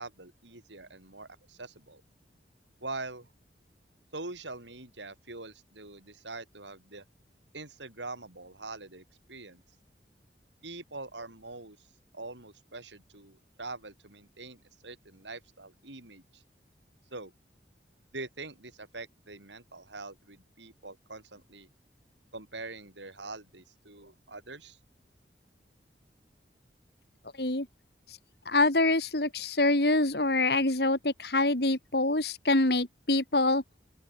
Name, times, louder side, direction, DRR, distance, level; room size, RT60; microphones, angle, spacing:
voice 1, 0.0-2.0 2.8-3.3 4.1-7.0 7.5-9.6 10.6-11.9 12.1-16.4 17.1-17.3 18.1-21.7 22.3-24.8, right 3 dB, 90° right, 7.4 m, -44 dB
voice 2, 28.5-33.6, left 2 dB, 65° left, 2.9 m, -25 dB
open air
head